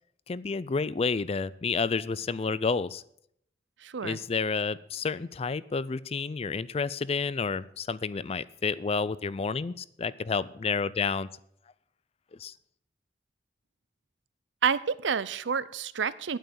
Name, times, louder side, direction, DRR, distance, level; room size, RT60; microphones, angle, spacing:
voice 1, 0.3-3.0 4.0-11.3 12.3-12.5, left 4 dB, 35° left, 18 dB, 0.4 m, -30 dB
voice 2, 3.8-4.2 14.6-16.4, right 6 dB, 90° right, 18 dB, 0.6 m, -29 dB
9.3 x 9.0 x 7.9 m, 0.71 s
head